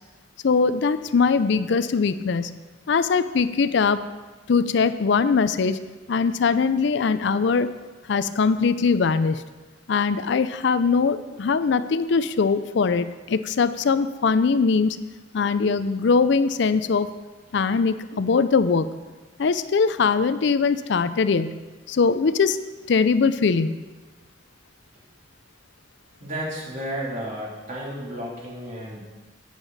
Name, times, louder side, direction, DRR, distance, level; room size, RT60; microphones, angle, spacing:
voice 1, 0.4-2.6 2.9-4.0 4.5-5.8 6.1-7.7 8.1-9.4 9.9-15.0 15.3-17.1 17.5-19.0 19.4-21.6 21.9-22.6 22.9-23.8, left 5 dB, 65° left, 13 dB, 0.4 m, -21 dB
voice 2, 26.2-29.0, equal, 40° right, -5 dB, 3.1 m, -32 dB
10.5 x 9.0 x 4.1 m, 1.2 s
head